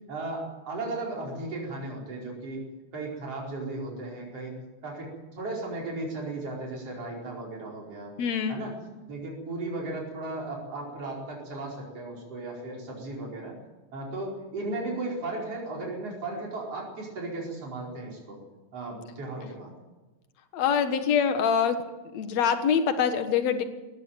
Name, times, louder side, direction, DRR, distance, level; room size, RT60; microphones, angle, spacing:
voice 1, 0.1-2.6 2.9-8.1 8.5-8.8 9.1-13.5 13.9-18.4 18.7-19.7, right 2 dB, 55° right, -2 dB, 5.8 m, -36 dB
voice 2, 8.2-8.6 20.5-21.8 22.1-23.6, left 7 dB, 65° left, 8 dB, 2.6 m, -24 dB
19.5 x 15.0 x 9.2 m, 1.1 s
omnidirectional pair, 3.3 m